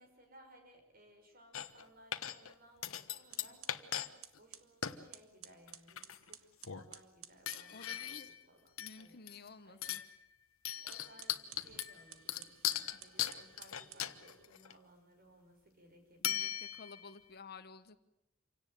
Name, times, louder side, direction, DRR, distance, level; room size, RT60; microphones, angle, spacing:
voice 1, 0.0-8.7 9.0-9.9 10.8-16.5, right 1 dB, 45° right, 5 dB, 6.0 m, -62 dB
sound 1, 1.5-1.8 2.1-2.5 2.8-4.1 4.3-4.4 4.8-5.0 5.7-6.3 6.6-6.9 7.5-8.4 8.8-9.5 9.8-10.2 10.6-14.7 16.2-17.1, left 11 dB, 85° left, 1.3 m, -39 dB
sound 2, 2.8-2.9 3.3-7.7 10.8-14.5, right 11 dB, 80° right, 1.3 m, -55 dB
voice 2, 7.7-8.3 8.8-10.0 12.9-13.0 16.2-18.0, left 4 dB, 50° left, 13 dB, 1.1 m, -53 dB
27.5 x 17.5 x 9.3 m, 0.84 s
head